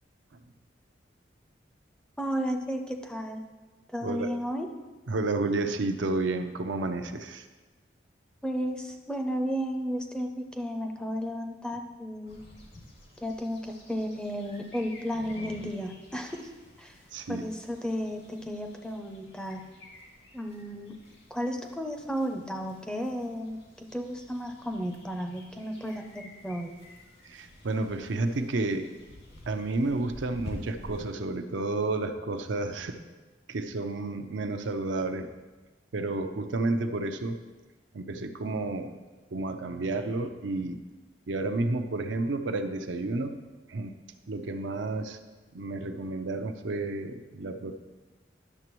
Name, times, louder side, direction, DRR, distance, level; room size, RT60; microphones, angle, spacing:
voice 1, 2.2-3.4 3.9-4.7 8.4-12.4 13.2-16.5 16.8-17.0 17.3-19.7 20.3-21.0 21.3-26.7, equal, 5° left, 4 dB, 0.5 m, -33 dB
voice 2, 5.1-7.5 17.1-17.5 27.3-28.9 29.5-33.0 33.5-35.3 35.9-37.4 37.9-38.9 39.3-40.8 41.3-43.4 43.7-43.9 44.3-45.2 45.5-47.8, right 2 dB, 85° right, 7 dB, 0.6 m, -31 dB
sound 1, 12.3-31.0, left 1 dB, 80° left, 2.2 m, -49 dB
11.0 x 6.7 x 3.0 m, 1.2 s
head